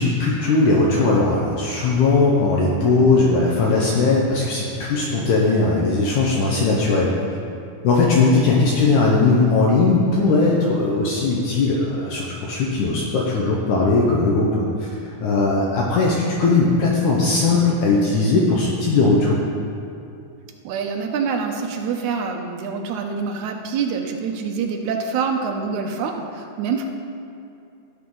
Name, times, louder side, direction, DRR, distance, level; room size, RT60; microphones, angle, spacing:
voice 1, 0.0-7.2 7.8-14.9 15.2-19.4, left 3 dB, 70° left, -3 dB, 2.4 m, -19 dB
voice 2, 20.6-26.8, right 5 dB, 75° right, 2 dB, 2.2 m, -26 dB
17.0 x 6.7 x 3.9 m, 2.6 s
omnidirectional pair, 3.7 m